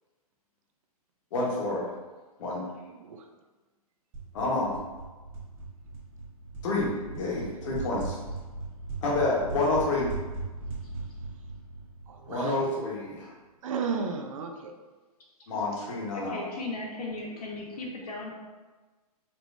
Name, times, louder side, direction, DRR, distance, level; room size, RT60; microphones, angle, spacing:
voice 1, 1.3-1.9 2.4-2.7 4.3-4.8 6.6-8.2 9.0-10.1 12.3-13.3 15.5-16.4, left 2 dB, 55° left, -4 dB, 1.4 m, -28 dB
sound 1, 4.1-12.8, right 3 dB, 35° right, 1.4 m, -39 dB
voice 2, 12.1-12.7 13.6-14.7, right 5 dB, 55° right, 5 dB, 0.5 m, -34 dB
voice 3, 16.1-18.3, left 2 dB, 75° left, -2 dB, 1.1 m, -36 dB
4.4 x 3.1 x 2.6 m, 1.2 s
hypercardioid pair, 130°, 20 cm